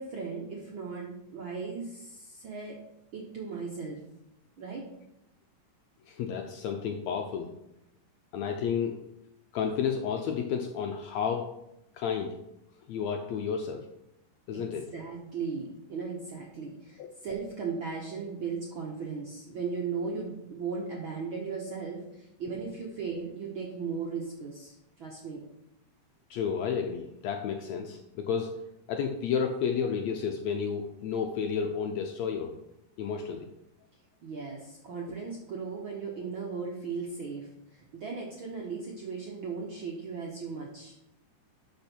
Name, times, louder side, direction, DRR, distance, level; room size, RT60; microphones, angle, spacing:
voice 1, 0.0-2.8 3.1-4.0 4.6-4.9 14.5-14.6 14.9-25.4 34.2-41.0, right 5 dB, 80° right, -2 dB, 1.1 m, -37 dB
voice 2, 6.1-7.5 8.3-9.0 9.5-11.5 11.9-12.4 12.9-13.8 14.5-14.9 26.3-28.5 28.9-32.5 33.0-33.5, left 7 dB, 90° left, 4 dB, 1.5 m, -31 dB
12.0 x 5.0 x 4.5 m, 0.85 s
omnidirectional pair, 4.0 m